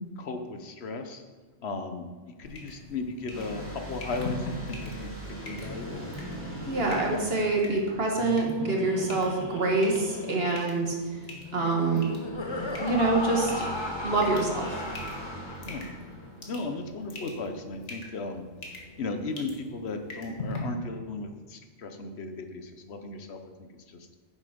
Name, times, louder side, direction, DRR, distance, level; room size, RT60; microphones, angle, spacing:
voice 1, 0.2-1.2 1.6-2.0 2.4-6.0 15.6-15.9 16.5-18.4 19.0-24.1, left 3 dB, 65° left, 6 dB, 1.2 m, -36 dB
sound 1, 2.4-20.6, left 2 dB, 90° left, 1.9 m, -44 dB
sound 2, 3.3-8.8 12.3-17.0, equal, 10° right, 2.6 m, -41 dB
Laughter, 5.5-16.0, left 1 dB, 25° left, 0.8 m, -37 dB
voice 2, 6.7-11.2 11.5-12.1 12.8-13.7 14.0-14.8, right 3 dB, 55° right, 0 dB, 1.8 m, -26 dB
9.6 x 7.4 x 5.1 m, 1.4 s
omnidirectional pair, 1.2 m